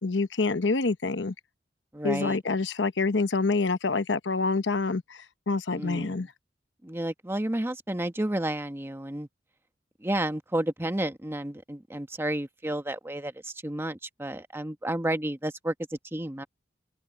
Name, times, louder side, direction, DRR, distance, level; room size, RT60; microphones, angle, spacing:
voice 1, 0.0-1.3 2.0-6.3, left 3 dB, 85° left, 0.9 m, -27 dB
voice 2, 1.9-2.4 5.8-6.2 6.8-9.3 10.0-16.5, right 1 dB, 15° right, 1.1 m, -31 dB
open air
head